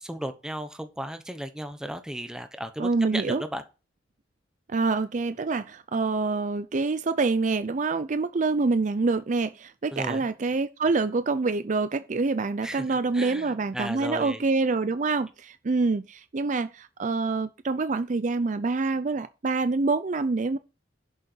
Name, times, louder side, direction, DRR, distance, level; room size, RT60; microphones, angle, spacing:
voice 1, 0.0-3.6 9.9-10.2 12.6-12.8 13.1-14.4, equal, 5° right, 1.1 m, -35 dB
voice 2, 2.8-3.4 4.7-20.6, right 3 dB, 40° right, 0.5 m, -26 dB
11.5 x 6.6 x 4.6 m
head